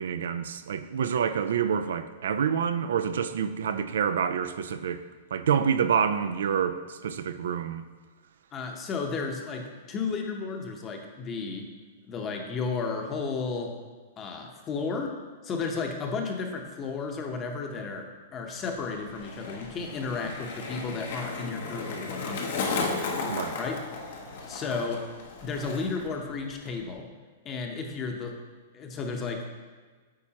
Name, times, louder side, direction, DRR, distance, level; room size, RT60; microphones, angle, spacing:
voice 1, 0.0-5.0 5.3-7.8 23.3-23.6, right 7 dB, 80° right, 0.4 m, -27 dB
voice 2, 8.5-11.7 12.1-13.8 14.2-15.2 15.4-22.5 23.6-23.8 24.5-25.1 25.4-27.1 27.4-28.4 28.7-29.5, left 4 dB, 25° left, 0.8 m, -33 dB
Skateboard, 18.6-26.1 26.4-26.9, left 4 dB, 65° left, 1.0 m, -35 dB
8.5 x 4.6 x 2.9 m
hypercardioid pair, 140°, 0 cm